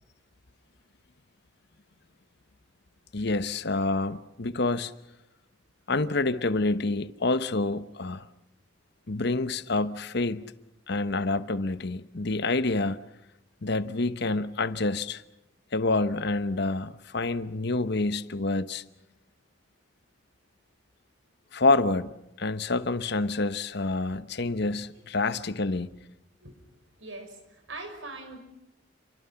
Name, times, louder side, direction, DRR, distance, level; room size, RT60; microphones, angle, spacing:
voice 1, 3.1-4.9 5.9-8.3 9.1-10.4 10.9-13.0 13.6-15.2 15.7-18.8 21.5-25.9, left 3 dB, 60° left, 1.0 m, -27 dB
voice 2, 27.0-28.4, right 2 dB, 75° right, 6.0 m, -41 dB
29.0 x 24.5 x 5.8 m
head